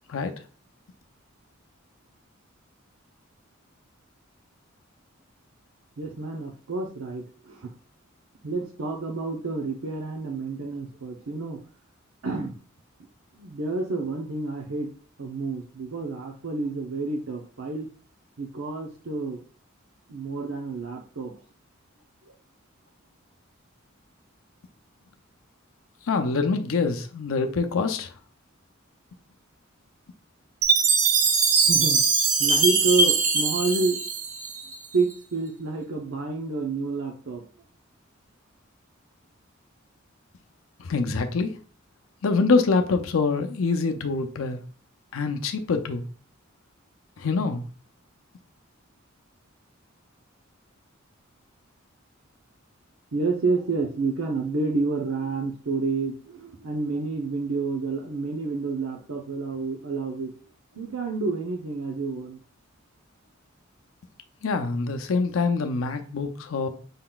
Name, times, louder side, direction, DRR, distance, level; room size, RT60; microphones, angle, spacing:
voice 1, 6.0-7.7 8.4-11.6 12.2-12.5 13.3-14.9 15.2-17.9 18.4-19.4 20.1-21.3 22.3-22.4 31.6-32.0 32.4-34.0 34.9-37.5 53.1-60.3 60.7-62.4, right 3 dB, 85° right, 0.7 m, -29 dB
voice 2, 26.0-28.1 40.8-41.5 42.2-44.6 45.1-46.0 47.2-47.6 64.4-66.7, left 4 dB, 90° left, 0.5 m, -25 dB
Chime, 30.6-34.9, right 4 dB, 40° right, 0.7 m, -21 dB
5.4 x 3.8 x 2.3 m
head